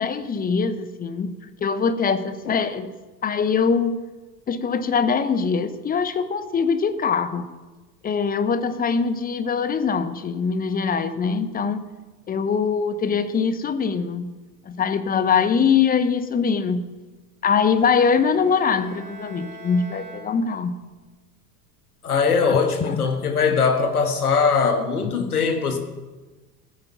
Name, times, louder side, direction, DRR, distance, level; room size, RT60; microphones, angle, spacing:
voice 1, 0.0-2.9 3.2-4.0 4.5-7.5 8.0-11.8 12.3-14.3 14.7-16.9 17.4-20.8 22.5-23.0 25.0-25.1, left 6 dB, 20° left, 12 dB, 0.8 m, -23 dB
Bowed string instrument, 17.9-21.0, right 3 dB, 45° right, 3.7 m, -43 dB
voice 2, 22.0-25.8, left 5 dB, 75° left, 5 dB, 1.8 m, -21 dB
15.5 x 9.1 x 5.8 m, 1.2 s
figure-of-eight pair, 75°, 45 cm